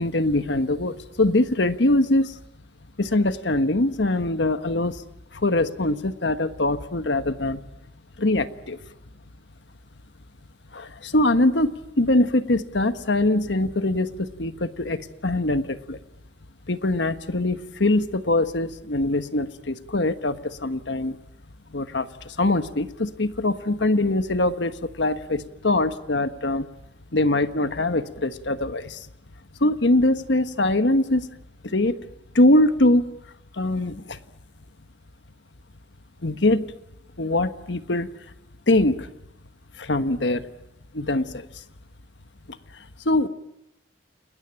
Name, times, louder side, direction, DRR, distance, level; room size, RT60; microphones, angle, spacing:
voice 1, 0.0-2.4 3.0-5.0 5.3-7.6 8.2-8.8 10.7-16.0 16.7-21.2 21.7-26.7 27.1-29.1 29.6-31.4 31.6-32.0 32.3-33.0 33.5-34.2 36.2-36.7 37.2-38.1 38.7-39.1 39.8-40.5 40.9-41.6 42.5-42.6 43.0-43.3, left 2 dB, 75° left, 10 dB, 1.4 m, -23 dB
29.5 x 20.5 x 8.9 m, 0.85 s
head